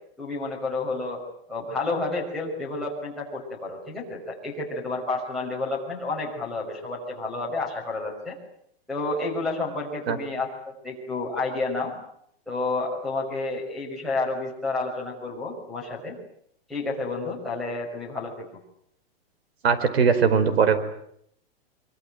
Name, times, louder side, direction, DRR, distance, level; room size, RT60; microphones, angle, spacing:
voice 1, 0.2-1.2 1.5-8.4 8.9-12.0 12.5-16.2 16.7-18.5, left 3 dB, ahead, -7 dB, 5.9 m, -30 dB
voice 2, 19.6-20.8, right 6 dB, 80° right, 13 dB, 4.7 m, -20 dB
24.5 x 24.5 x 9.1 m, 0.71 s
hypercardioid pair, 180°, 31 cm